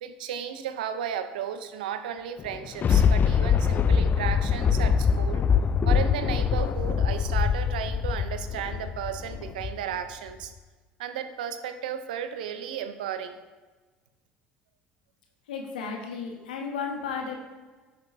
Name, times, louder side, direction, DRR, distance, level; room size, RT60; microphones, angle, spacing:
voice 1, 0.0-5.4 5.9-10.5 11.0-13.4, right 8 dB, 85° right, 10 dB, 0.6 m, -34 dB
Thunder, 2.4-9.9 10.4-10.5, left 7 dB, 40° left, 0.4 m, -24 dB
voice 2, 15.5-17.3, left 5 dB, 85° left, 2 dB, 1.2 m, -33 dB
11.0 x 6.8 x 2.7 m, 1.3 s
hypercardioid pair, 65°, 5 cm